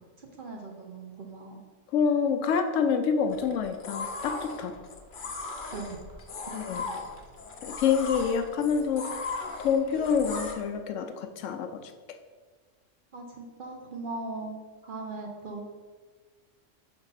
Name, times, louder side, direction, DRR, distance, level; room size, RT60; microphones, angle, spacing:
voice 1, 0.2-1.6 5.7-6.2 13.1-15.6, right 3 dB, 50° right, 1 dB, 0.8 m, -39 dB
voice 2, 1.9-4.7 6.5-6.9 7.6-12.2, left 6 dB, 75° left, 7 dB, 0.9 m, -27 dB
sound 1, 3.3-10.5, left 3 dB, 50° left, 0.7 m, -38 dB
5.5 x 4.4 x 4.0 m, 1.4 s
omnidirectional pair, 1.3 m